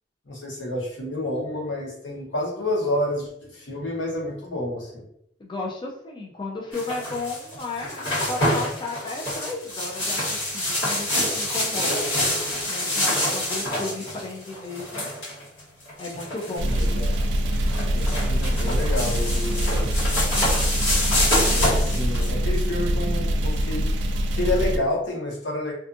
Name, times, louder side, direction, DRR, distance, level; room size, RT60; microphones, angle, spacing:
voice 1, 0.3-5.0 16.6-17.1 17.9-20.0 21.5-25.7, left 1 dB, 90° left, -3 dB, 1.0 m, -29 dB
voice 2, 5.4-12.1 12.7-15.1 16.0-17.1, left 3 dB, 25° left, -1 dB, 0.4 m, -34 dB
sound 1, 6.7-22.3, left 1 dB, 70° left, 1.4 m, -27 dB
sound 2, 16.6-24.8, equal, 80° right, 0.3 m, -24 dB
2.5 x 2.4 x 2.5 m, 0.72 s
head